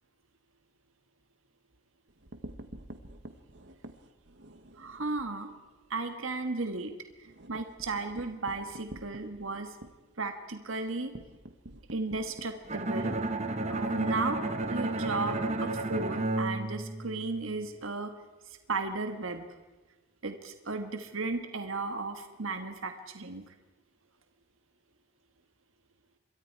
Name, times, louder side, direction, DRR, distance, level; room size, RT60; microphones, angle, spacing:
sound 1, 2.1-5.3 5.7-5.9 6.2-6.3 6.6-15.4, right 1 dB, 55° right, 1.4 m, -49 dB
voice 1, 4.8-5.5 5.9-6.9 7.5-9.7 10.2-11.1 11.9-13.1 13.7-14.4 14.7-18.1 18.7-19.4 20.2-23.4, right 3 dB, 70° right, 6 dB, 1.6 m, -34 dB
Bowed string instrument, 12.7-17.6, right 2 dB, 30° right, 1.2 m, -32 dB
27.0 x 23.0 x 4.7 m, 1.2 s
head